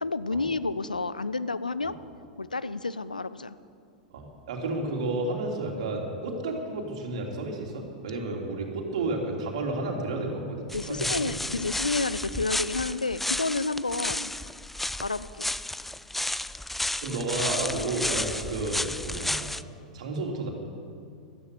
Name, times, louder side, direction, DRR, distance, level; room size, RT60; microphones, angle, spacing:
voice 1, 0.0-2.0 2.4-3.6 10.7-14.3 15.0-15.5, left 3 dB, 85° left, 15 dB, 0.5 m, -30 dB
voice 2, 4.1-11.4 17.0-19.5 19.9-20.5, right 2 dB, 55° right, 1 dB, 3.0 m, -31 dB
sound 1, 10.7-19.6, left 1 dB, 5° left, 0.3 m, -32 dB
15.5 x 12.5 x 6.8 m, 2.3 s
figure-of-eight pair, 95°, 4 cm